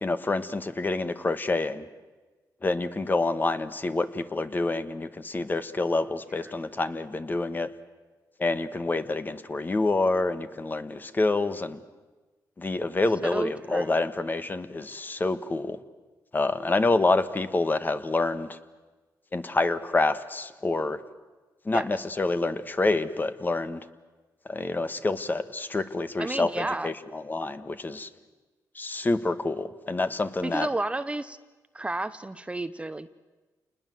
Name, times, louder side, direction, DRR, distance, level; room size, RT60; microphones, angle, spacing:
voice 1, 0.0-1.9 2.6-7.7 8.4-11.8 12.6-15.8 16.3-18.6 19.3-21.0 21.6-23.8 24.5-28.1 28.7-30.7, left 2 dB, 25° left, 11 dB, 1.5 m, -27 dB
voice 2, 13.2-14.0 21.7-21.8 26.2-26.9 30.4-31.4 31.7-33.1, right 2 dB, 15° right, 12 dB, 0.8 m, -31 dB
28.5 x 20.5 x 7.9 m, 1.2 s
cardioid pair, 90°, 7 cm